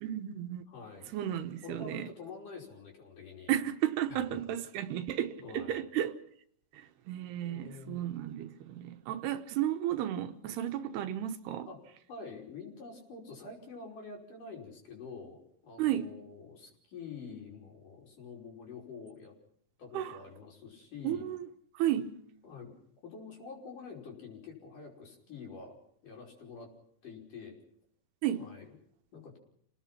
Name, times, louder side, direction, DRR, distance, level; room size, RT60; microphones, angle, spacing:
voice 1, 0.0-0.6 1.1-2.1 3.5-6.1 6.7-11.7 15.8-16.1 19.9-20.2 21.0-21.5 21.7-22.1 28.2-28.4, right 11 dB, 80° right, 3.0 m, -33 dB
voice 2, 0.7-1.1 1.6-3.6 4.1-4.4 5.4-5.8 7.4-8.0 11.7-11.8 12.1-19.3 19.8-21.2 22.4-22.7 23.0-25.8 26.0-26.7 27.0-27.5 28.4-28.7 29.1-29.4, left 4 dB, 50° left, 6.8 m, -47 dB
29.5 x 19.0 x 5.9 m
omnidirectional pair, 4.7 m